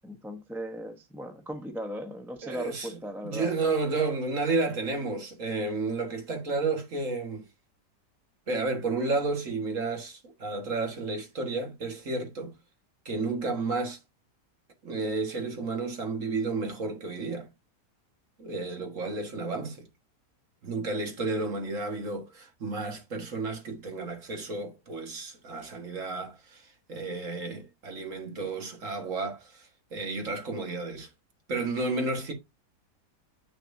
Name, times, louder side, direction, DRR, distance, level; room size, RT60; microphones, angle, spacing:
voice 1, 0.0-3.5 18.8-18.9, equal, 5° right, 0.4 m, -38 dB
voice 2, 2.4-3.0 3.2-7.5 8.5-12.5 13.1-14.0 14.8-17.5 18.4-19.9 20.6-31.1 31.5-32.3, right 3 dB, 50° right, 1.9 m, -32 dB
7.4 x 6.5 x 2.7 m
omnidirectional pair, 1.8 m